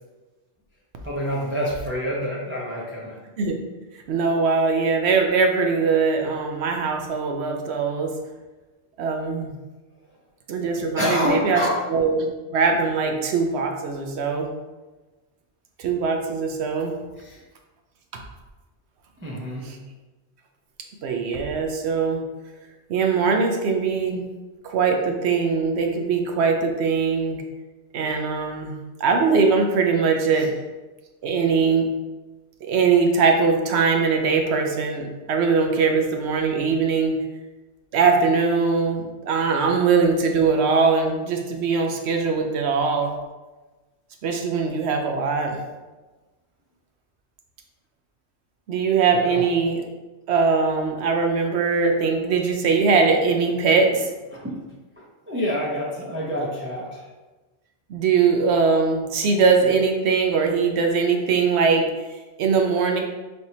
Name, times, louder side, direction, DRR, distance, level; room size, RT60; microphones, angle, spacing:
voice 1, 1.0-3.2 11.0-11.8 17.2-17.4 19.2-19.7 30.3-30.4 49.1-49.4 54.3-54.6 55.3-57.1, left 1 dB, 15° right, -5 dB, 0.4 m, -27 dB
voice 2, 4.1-8.1 9.0-9.5 10.5-12.3 12.5-14.5 15.8-16.9 19.6-19.8 21.0-22.2 22.9-24.2 24.6-27.4 27.9-30.5 31.2-31.9 32.6-37.2 37.9-43.1 44.2-45.6 48.7-49.8 50.3-54.1 57.9-61.9 62.4-63.0, right 5 dB, 70° right, 3 dB, 0.8 m, -21 dB
4.4 x 3.3 x 2.7 m, 1.2 s
omnidirectional pair, 1.2 m